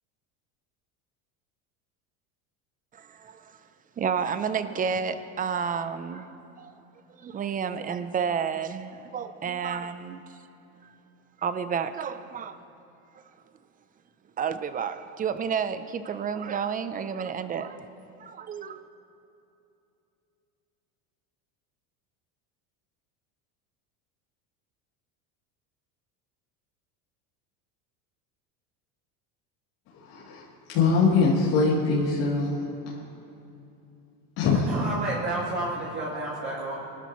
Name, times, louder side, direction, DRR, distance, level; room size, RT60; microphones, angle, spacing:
voice 1, 2.9-3.6 4.0-6.3 6.6-6.7 7.2-10.2 10.8-10.9 11.4-12.6 14.4-17.9 18.2-18.8, right 6 dB, 20° right, 11 dB, 0.5 m, -30 dB
voice 2, 30.1-30.4 30.7-32.5 32.9-33.0 34.4-34.7, left 4 dB, 60° left, -7 dB, 3.0 m, -22 dB
voice 3, 34.7-36.7, right 2 dB, 40° right, -7 dB, 2.9 m, -30 dB
25.0 x 13.0 x 3.1 m, 2.8 s
supercardioid pair, 130°, 41 cm